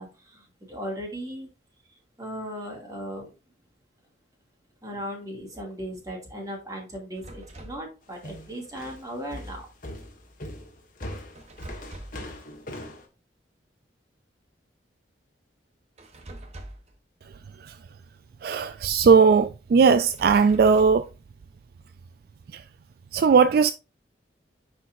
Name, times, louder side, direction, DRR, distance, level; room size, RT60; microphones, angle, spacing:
voice 1, 0.0-1.5 1.9-3.3 4.8-9.7, equal, 20° right, 2.4 m, -37 dB
sound 1, 7.2-7.9 11.3-12.3 16.0-17.0 19.9-21.1, right 1 dB, 40° right, 1.0 m, -43 dB
sound 2, 8.2-13.0, left 1 dB, 50° left, 1.4 m, -40 dB
voice 2, 18.4-21.1 22.5-22.6 23.1-23.7, right 5 dB, 55° right, 0.3 m, -18 dB
10.0 x 4.4 x 2.5 m
head